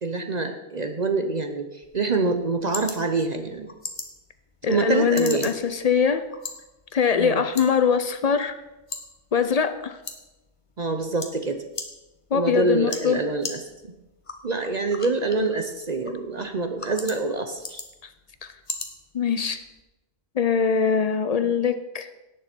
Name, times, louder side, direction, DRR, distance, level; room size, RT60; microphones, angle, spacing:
voice 1, 0.0-3.7 4.7-5.5 7.2-7.4 10.8-11.6 12.3-13.9 14.4-17.8 21.4-21.5, right 3 dB, 40° right, 6 dB, 0.7 m, -26 dB
sound 1, 1.8-19.8, left 3 dB, 30° left, 1.0 m, -41 dB
voice 2, 4.6-6.2 6.9-8.5 9.3-10.0 12.3-13.2 18.4-18.5 19.1-19.6 20.4-22.1, left 6 dB, 55° left, 11 dB, 0.4 m, -22 dB
17.0 x 6.7 x 4.4 m, 1.0 s
omnidirectional pair, 1.3 m